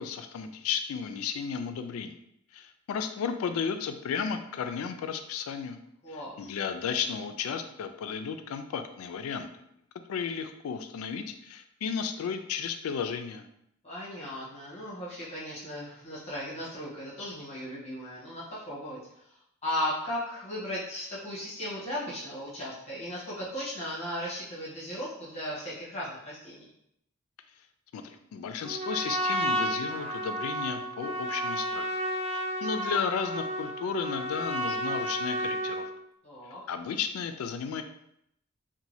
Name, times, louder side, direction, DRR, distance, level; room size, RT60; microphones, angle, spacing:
voice 1, 0.0-2.2 2.5-5.8 6.1-9.5 10.1-13.5 27.9-31.9 32.3-35.9 36.7-37.8, left 6 dB, 75° left, 11 dB, 0.3 m, -34 dB
voice 2, 6.0-6.5 13.8-19.0 19.6-26.6 36.2-36.6, left 1 dB, 30° left, -7 dB, 0.8 m, -36 dB
Trumpet, 28.6-36.0, right 1 dB, 30° right, 0.3 m, -32 dB
2.7 x 2.2 x 3.0 m, 0.76 s
head